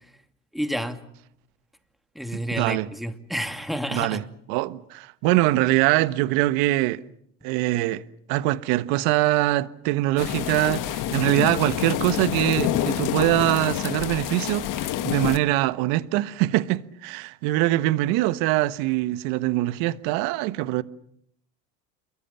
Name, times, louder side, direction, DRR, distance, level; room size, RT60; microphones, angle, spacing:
voice 1, 0.5-1.0 2.1-4.2, equal, ahead, 2.7 m, -30 dB
voice 2, 2.5-2.9 3.9-4.2 4.5-7.0 7.4-8.0 8.3-20.8, right 17 dB, 65° right, 1.3 m, -23 dB
sound 1, 10.2-15.4, left 12 dB, 55° left, 1.8 m, -27 dB
28.5 x 23.0 x 7.2 m
hypercardioid pair, 85°, 38 cm